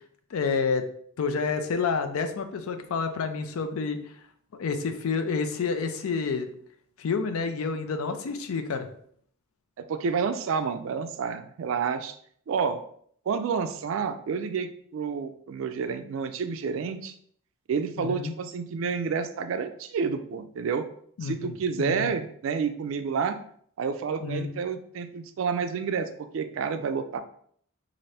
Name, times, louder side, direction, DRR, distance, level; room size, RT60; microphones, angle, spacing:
voice 1, 0.3-0.9 1.2-4.0 4.6-6.5 7.0-8.9 18.0-18.3 21.2-22.1 24.2-24.6, left 5 dB, 90° left, 8 dB, 0.4 m, -29 dB
voice 2, 9.9-12.2 12.5-12.8 13.3-17.1 17.7-20.8 21.2-23.4 23.8-27.2, right 6 dB, 65° right, 9 dB, 0.3 m, -29 dB
2.7 x 2.5 x 3.2 m, 0.62 s
head